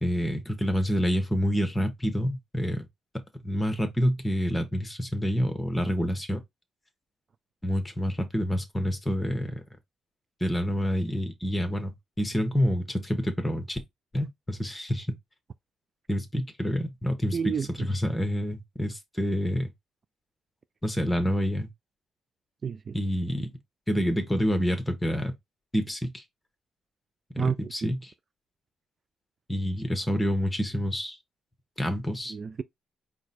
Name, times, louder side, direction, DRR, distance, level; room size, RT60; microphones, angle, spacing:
voice 1, 0.0-2.9 3.4-6.4 7.6-9.6 10.4-13.8 14.1-15.1 16.1-19.7 20.8-21.7 22.9-23.5 23.9-25.3 25.7-26.2 27.3-28.0 29.5-31.2 31.8-32.3, equal, 15° left, 1.3 m, -28 dB
voice 2, 17.3-18.1 22.6-23.0 27.4-27.9 32.3-32.6, right 6 dB, 40° right, 0.3 m, -32 dB
4.7 x 2.3 x 4.3 m
cardioid pair, 90°, 0 cm